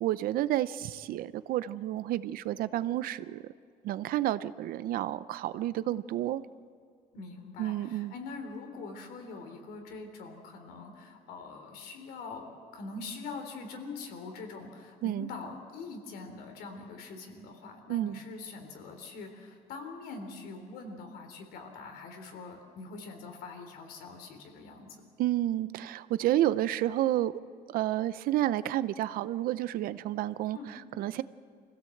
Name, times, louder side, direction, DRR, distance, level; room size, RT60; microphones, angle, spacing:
voice 1, 0.0-3.4 3.8-6.4 7.6-8.1 15.0-15.3 17.9-18.2 25.2-27.4 27.7-31.2, right 14 dB, 65° right, 15 dB, 0.7 m, -30 dB
voice 2, 7.1-25.1 30.5-30.7, left 3 dB, 85° left, 4 dB, 3.5 m, -43 dB
26.0 x 16.5 x 7.8 m, 2.2 s
cardioid pair, 175°, 16 cm